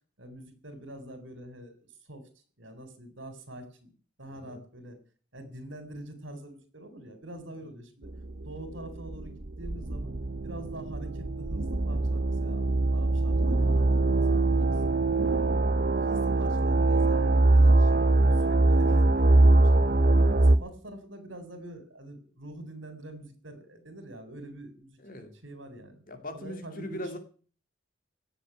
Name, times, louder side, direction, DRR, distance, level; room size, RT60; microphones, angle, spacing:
voice 1, 0.2-2.3 2.6-3.9 4.2-5.0 5.3-8.1 8.4-10.2 10.4-15.1 15.6-17.9 18.4-19.9 20.2-26.0 26.3-27.2, right 1 dB, 70° right, 9 dB, 4.2 m, -45 dB
sound 1, 8.1-20.6, right 2 dB, 50° right, 1.0 m, -23 dB
voice 2, 14.5-14.9 20.3-20.4 25.0-25.3 26.1-27.2, left 1 dB, 45° left, 6 dB, 2.7 m, -40 dB
17.0 x 7.6 x 9.4 m, 0.42 s
head